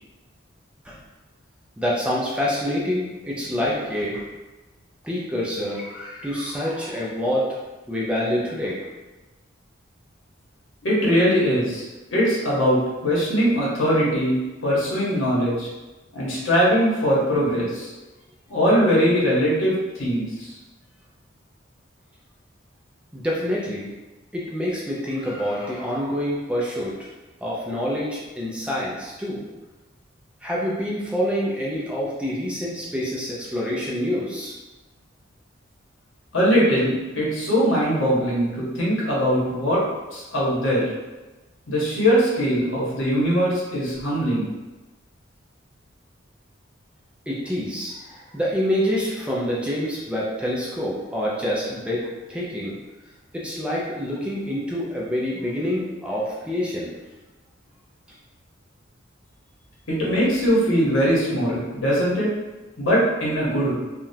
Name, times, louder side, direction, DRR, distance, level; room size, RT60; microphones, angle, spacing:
voice 1, 1.8-4.3 5.0-7.6 7.9-8.8 23.1-23.9 24.3-27.1 27.4-29.4 30.4-34.5 47.3-52.8 53.3-56.9, equal, 5° right, -5 dB, 0.5 m, -27 dB
voice 2, 10.8-11.8 12.1-15.7 16.1-17.9 18.5-20.5 36.3-39.8 40.1-40.9 41.7-44.5 59.9-62.3 62.8-63.7, equal, 80° left, -6 dB, 1.1 m, -21 dB
3.6 x 2.4 x 2.7 m, 1.1 s
head